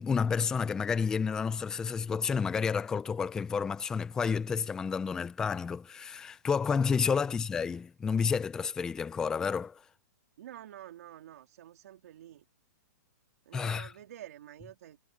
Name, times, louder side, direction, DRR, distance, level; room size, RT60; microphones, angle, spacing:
voice 1, 0.0-9.8 13.5-13.9, left 6 dB, 5° left, 0.4 m, -30 dB
voice 2, 10.4-12.4 13.4-15.0, right 12 dB, 60° right, 2.9 m, -49 dB
hypercardioid pair, 170°, 10 cm